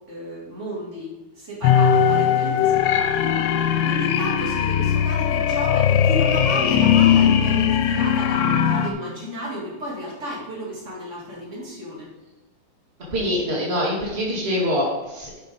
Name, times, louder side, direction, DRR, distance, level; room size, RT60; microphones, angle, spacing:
voice 1, 0.1-12.1, left 1 dB, 30° right, -5 dB, 1.5 m, -33 dB
sound 1, 1.6-8.9, left 8 dB, 80° left, 2.4 m, -19 dB
voice 2, 13.1-15.4, equal, 70° right, -5 dB, 0.6 m, -24 dB
9.0 x 5.6 x 5.3 m, 1.1 s
omnidirectional pair, 5.3 m